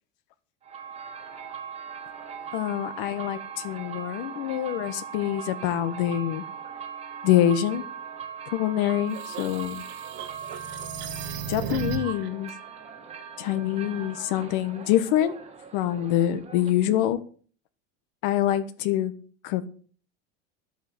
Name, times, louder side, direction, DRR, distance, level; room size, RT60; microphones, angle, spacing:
sound 1, 0.6-17.1, right 7 dB, 20° right, 1.8 m, -40 dB
voice 1, 2.5-6.4 7.2-7.8 8.5-9.8 11.5-12.5 13.4-15.3 15.7-17.2 18.2-19.1 19.4-19.7, left 12 dB, 55° left, 11 dB, 1.3 m, -25 dB
sound 2, 8.8-12.3, right 7 dB, 35° right, 1.7 m, -35 dB
11.0 x 8.1 x 7.8 m, 0.43 s
supercardioid pair, 165°, 31 cm